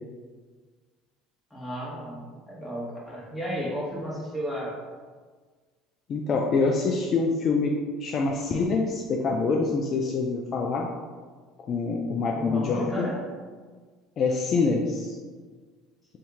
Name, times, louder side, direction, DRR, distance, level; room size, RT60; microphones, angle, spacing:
voice 1, 1.5-4.8 12.3-13.2, equal, 5° left, -5 dB, 1.2 m, -33 dB
voice 2, 6.1-10.9 11.7-13.1 14.2-15.2, left 4 dB, 45° left, 0 dB, 0.3 m, -25 dB
2.8 x 2.7 x 3.5 m, 1.5 s
hypercardioid pair, 70°, 0 cm